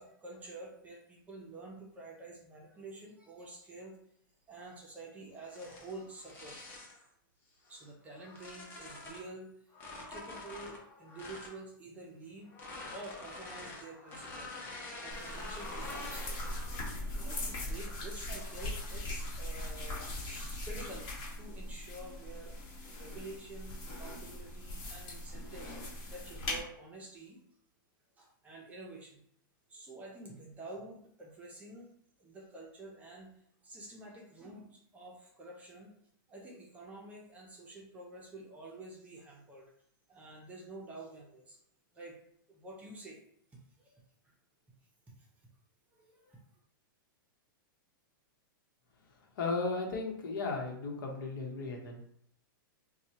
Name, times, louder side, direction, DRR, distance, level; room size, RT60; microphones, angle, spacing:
voice 1, 0.0-4.0 4.5-6.6 7.7-9.5 10.1-12.5 12.9-14.6 14.9-21.0 21.4-22.6 23.0-25.8 26.1-27.4 28.2-29.2 29.7-31.9 32.2-33.3 33.6-35.9 36.3-39.7 40.1-41.6 41.9-42.2 42.5-43.2 43.8-44.0 45.2-45.3 45.9-46.4, right 2 dB, 15° right, -2 dB, 0.8 m, -49 dB
sound 1, 5.4-7.0 7.7-9.3 9.7-11.6 12.5-16.9 17.4-17.7 18.3-18.9, left 2 dB, 20° left, 0.9 m, -47 dB
sound 2, 15.1-26.6, left 1 dB, 35° left, 1.5 m, -40 dB
voice 2, 49.3-52.0, left 3 dB, 70° left, 1 dB, 1.1 m, -35 dB
4.2 x 2.3 x 2.9 m, 0.68 s
hypercardioid pair, 145°, 11 cm